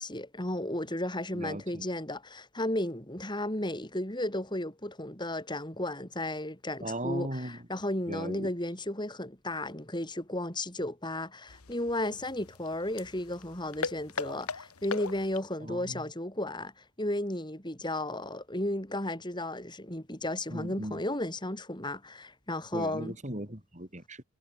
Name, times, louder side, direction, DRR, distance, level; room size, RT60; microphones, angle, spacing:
voice 1, 0.0-23.1, left 1 dB, 20° left, 5.1 m, -34 dB
voice 2, 1.3-1.8 6.8-7.6 8.1-8.5 15.6-16.0 20.5-21.0 22.7-24.2, right 1 dB, 35° right, 5.1 m, -38 dB
sound 1, 11.5-15.5, left 5 dB, 85° left, 1.5 m, -40 dB
head